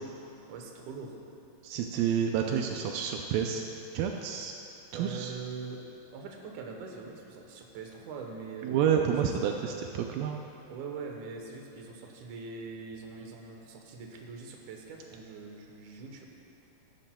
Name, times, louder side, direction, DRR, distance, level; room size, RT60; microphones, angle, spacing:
voice 1, 0.5-1.2 4.9-5.8 6.1-9.6 10.7-16.3, right 4 dB, 70° right, 1 dB, 2.3 m, -42 dB
voice 2, 1.6-3.6 3.9-4.5 4.9-5.3 8.6-10.4, right 8 dB, 85° right, 3 dB, 2.3 m, -29 dB
15.5 x 11.5 x 2.2 m, 2.9 s
omnidirectional pair, 4.0 m